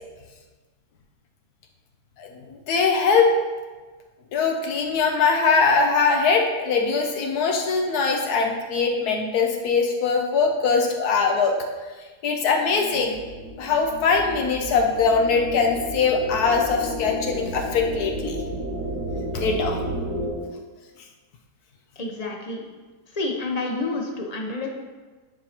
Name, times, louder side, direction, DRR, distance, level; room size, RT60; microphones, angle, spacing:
voice 1, 2.7-3.3 4.3-11.5 12.2-13.2 13.6-18.4 19.3-19.8, left 5 dB, 85° left, 2 dB, 1.3 m, -21 dB
sound 1, 12.7-20.3, equal, 60° right, 2.8 m, -32 dB
voice 2, 22.0-22.6 23.1-24.7, left 3 dB, 35° left, 1 dB, 0.7 m, -29 dB
9.7 x 5.5 x 2.9 m, 1.3 s
omnidirectional pair, 1.6 m